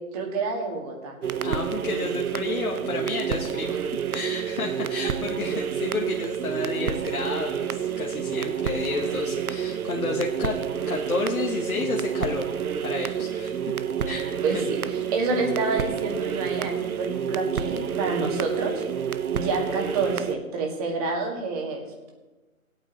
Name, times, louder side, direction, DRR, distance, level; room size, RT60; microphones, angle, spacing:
voice 1, 0.1-1.1 5.3-5.4 14.4-18.8 19.3-22.1, right 3 dB, 25° right, 1 dB, 1.9 m, -28 dB
sound 1, 1.2-20.4, right 8 dB, 85° right, 0.7 m, -29 dB
voice 2, 1.4-3.8 4.1-10.5 10.9-12.4 12.8-13.7 14.0-14.6, left 4 dB, 85° left, 0 dB, 1.3 m, -31 dB
18.0 x 8.8 x 3.0 m, 1.2 s
figure-of-eight pair, 145°, 42 cm